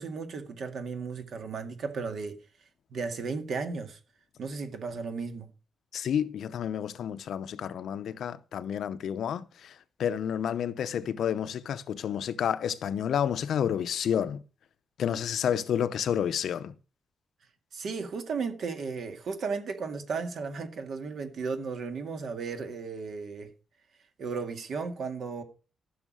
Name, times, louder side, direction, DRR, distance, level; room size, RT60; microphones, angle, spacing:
voice 1, 0.0-2.3 2.9-4.0 4.4-5.5 17.7-23.5 24.2-25.4, right 4 dB, 55° right, 2.1 m, -35 dB
voice 2, 5.9-9.5 10.0-14.4 15.0-16.7, left 9 dB, 65° left, 0.7 m, -30 dB
14.5 x 6.5 x 6.3 m
wide cardioid pair, 180°, 0 cm